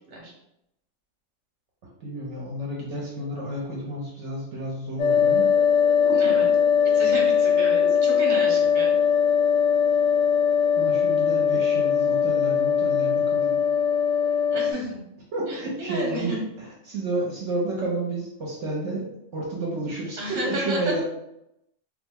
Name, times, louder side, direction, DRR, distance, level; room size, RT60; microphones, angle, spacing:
voice 1, 2.0-5.5 6.0-6.4 7.8-7.9 8.3-8.4 10.8-13.6 15.3-21.0, right 1 dB, 70° right, -4 dB, 1.0 m, -31 dB
sound 1, 5.0-14.7, left 7 dB, 75° left, 1.0 m, -21 dB
voice 2, 6.1-6.5 6.9-8.9 14.5-15.0 15.5-16.4 20.2-21.0, right 1 dB, 40° right, -3 dB, 1.0 m, -32 dB
3.2 x 2.0 x 3.5 m, 0.83 s
omnidirectional pair, 1.3 m